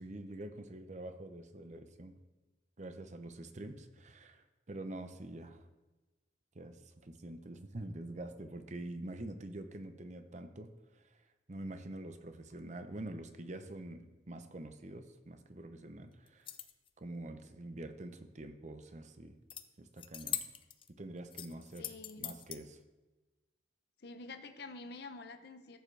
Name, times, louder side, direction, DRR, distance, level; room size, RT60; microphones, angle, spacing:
voice 1, 0.0-2.1 2.8-5.6 6.5-11.2 11.5-16.5 17.0-19.4 19.8-20.4 21.0-22.8, right 1 dB, 40° right, 8 dB, 0.7 m, -46 dB
sound 1, 16.3-16.9 19.5-19.6 20.0-20.9 21.3-22.6, left 10 dB, 30° left, 0.4 m, -41 dB
voice 2, 21.8-22.3 24.0-25.8, left 3 dB, 60° left, 8 dB, 0.7 m, -48 dB
14.0 x 7.5 x 3.3 m, 1.2 s
head